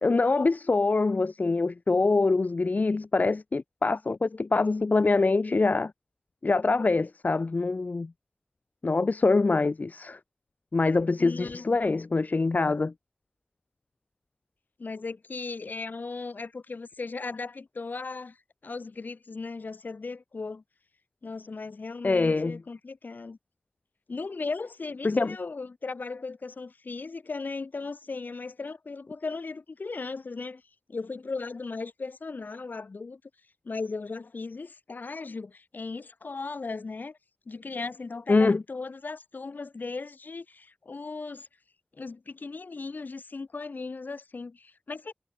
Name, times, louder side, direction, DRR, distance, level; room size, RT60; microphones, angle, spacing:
voice 1, 0.0-5.9 6.4-8.1 8.8-10.2 10.7-12.9 22.0-22.6 25.0-25.4 38.3-38.6, left 3 dB, 60° left, 1.3 m, -24 dB
voice 2, 11.2-11.7 14.8-18.4 18.6-20.6 21.2-23.4 24.1-30.6 30.9-33.2 33.6-37.2 37.5-41.5 41.9-45.1, left 4 dB, 80° left, 5.0 m, -37 dB
wide cardioid pair, 60°, 3 cm